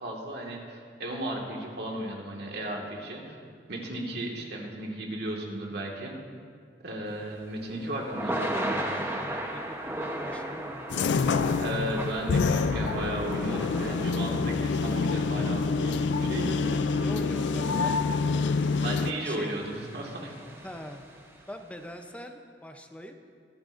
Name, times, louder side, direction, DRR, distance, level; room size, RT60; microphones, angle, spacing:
voice 1, 0.0-3.4 3.7-6.1 6.8-8.9 11.6-16.6 18.8-20.3, right 1 dB, 65° right, -1 dB, 1.8 m, -35 dB
Thunder / Rain, 7.2-21.4, right 1 dB, 15° right, 0.9 m, -37 dB
voice 2, 8.3-11.7 16.6-18.0 19.0-19.5 20.6-21.0 21.5-23.3, equal, 10° left, 5 dB, 0.6 m, -43 dB
sound 1, 10.9-19.1, left 4 dB, 90° left, 0.4 m, -27 dB
24.5 x 8.8 x 2.6 m, 2.1 s
head